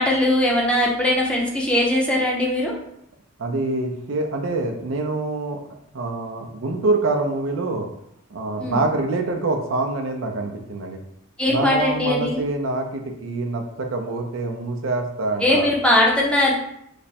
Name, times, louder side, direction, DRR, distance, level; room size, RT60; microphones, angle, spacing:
voice 1, 0.0-2.7 8.6-8.8 11.4-12.4 15.4-16.5, left 1 dB, 5° left, -3 dB, 0.6 m, -20 dB
voice 2, 3.4-5.6 5.9-7.9 8.3-11.0 11.5-15.7, right 2 dB, 65° right, 3 dB, 0.5 m, -25 dB
3.3 x 2.1 x 4.1 m, 0.75 s
head